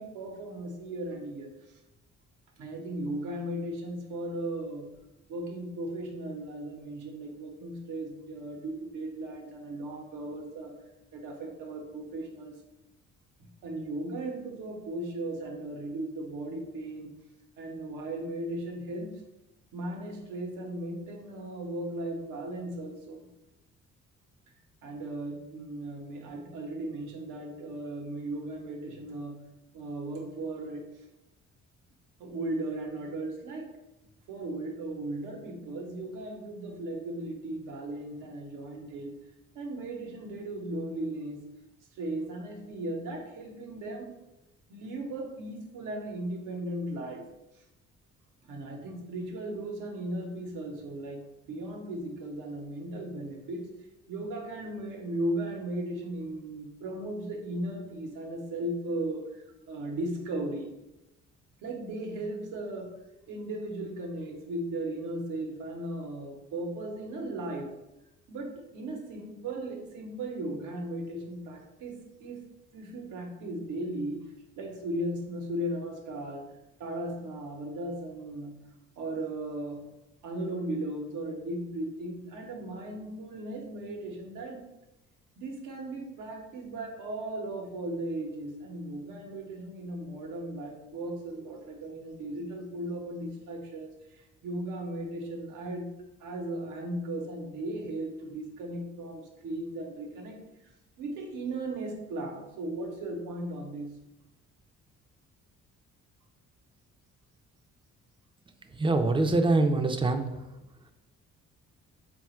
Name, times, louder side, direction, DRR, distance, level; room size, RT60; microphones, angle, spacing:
voice 1, 0.0-1.8 2.6-4.9 5.3-10.7 11.1-12.6 13.6-17.1 17.6-19.1 19.7-23.3 24.8-29.4 29.7-30.9 32.2-33.7 34.3-39.2 39.5-41.4 41.9-44.1 44.7-47.3 48.4-53.7 54.1-60.7 61.6-63.0 63.3-67.7 68.3-72.5 72.7-74.3 74.6-76.5 76.8-78.6 79.0-79.9 80.2-84.6 85.4-95.9 96.2-100.4 101.0-103.9, right 1 dB, 90° right, 2 dB, 0.9 m, -36 dB
voice 2, 108.7-110.4, right 2 dB, 15° right, 7 dB, 0.4 m, -24 dB
3.8 x 2.4 x 4.3 m, 0.93 s
cardioid pair, 90°, 30 cm